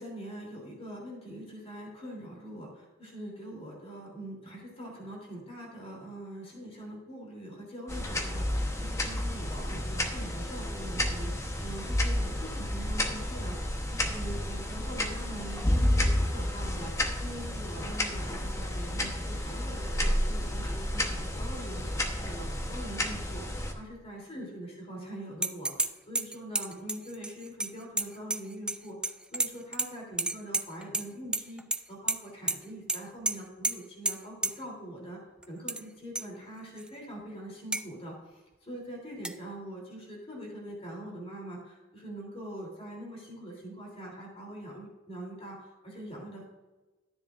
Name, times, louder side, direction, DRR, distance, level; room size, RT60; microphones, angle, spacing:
voice 1, 0.0-13.6 13.9-31.6 31.9-35.2 35.5-46.5, right 1 dB, 30° left, -1 dB, 3.2 m, -43 dB
sound 1, 7.9-23.7, left 1 dB, 15° left, 1.0 m, -31 dB
sound 2, 25.4-25.9 26.2-28.8 29.0-29.9 30.2-31.0 31.3-31.8 32.1-32.2 32.5-32.6 32.9-33.0 33.3-33.4 33.6-33.7 34.1-34.2 34.4-34.5 35.4-35.8 36.2-36.3 36.8-36.9 37.7-37.8 39.2-39.3, right 2 dB, 5° right, 0.3 m, -30 dB
12.5 x 10.5 x 2.5 m, 1.2 s
head